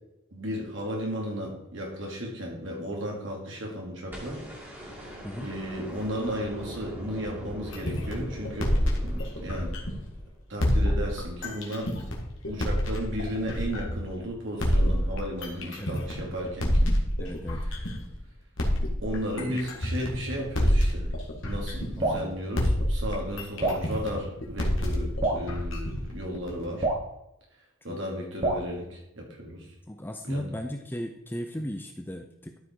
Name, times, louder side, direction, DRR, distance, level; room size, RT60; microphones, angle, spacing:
voice 1, 0.3-4.4 4.8-8.8 9.0-9.7 10.5-11.9 12.5-16.9 19.0-21.1 21.4-26.9 27.8-29.7 30.2-30.5, equal, 55° right, -1 dB, 2.8 m, -34 dB
sound 1, 4.1-10.3 11.8-11.9, equal, 10° right, 2.7 m, -41 dB
sound 2, 7.7-10.2 10.6-14.1 14.6-18.1 18.6-22.3 22.6-26.6, equal, 60° left, 2.0 m, -27 dB
voice 2, 17.2-17.7 19.5-19.6 22.0-22.4 27.9-28.0 29.9-32.6, equal, 10° left, 5 dB, 0.5 m, -36 dB
Drip, 22.0-22.3 23.6-23.9 25.2-25.5 26.8-27.1 28.4-28.7, right 2 dB, 30° right, 1.4 m, -26 dB
12.5 x 5.1 x 4.7 m, 0.89 s
head